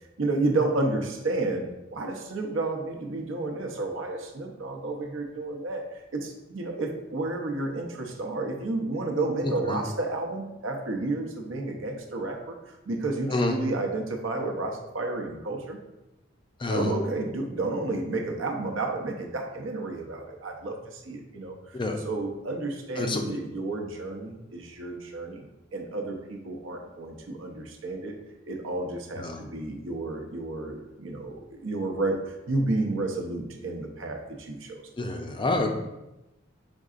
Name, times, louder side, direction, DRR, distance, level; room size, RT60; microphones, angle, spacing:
voice 1, 0.2-15.8 16.7-21.8 22.0-25.4 25.7-28.2 28.4-34.8, right 2 dB, 75° right, 2 dB, 0.7 m, -31 dB
voice 2, 9.4-9.8 13.3-13.5 16.6-16.9 21.7-22.0 23.0-23.4 29.2-29.4 35.0-35.7, left 2 dB, 25° left, 4 dB, 0.4 m, -28 dB
5.2 x 3.7 x 2.4 m, 0.96 s
head